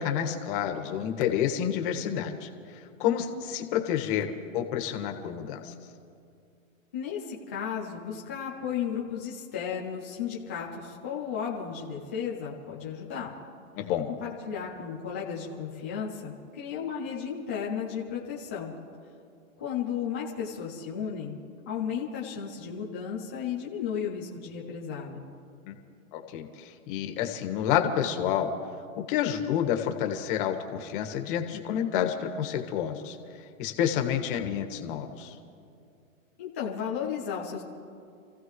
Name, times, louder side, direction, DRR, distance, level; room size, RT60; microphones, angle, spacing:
voice 1, 0.0-2.5 3.0-5.7 13.8-14.1 25.7-25.8 26.1-28.5 29.0-33.2 33.6-35.3, left 9 dB, 35° left, 5 dB, 1.7 m, -29 dB
voice 2, 6.9-13.3 14.2-18.7 19.6-21.4 21.7-25.2 36.4-37.6, left 7 dB, 10° left, -5 dB, 0.3 m, -34 dB
29.0 x 15.5 x 3.2 m, 2.4 s
hypercardioid pair, 155°, 42 cm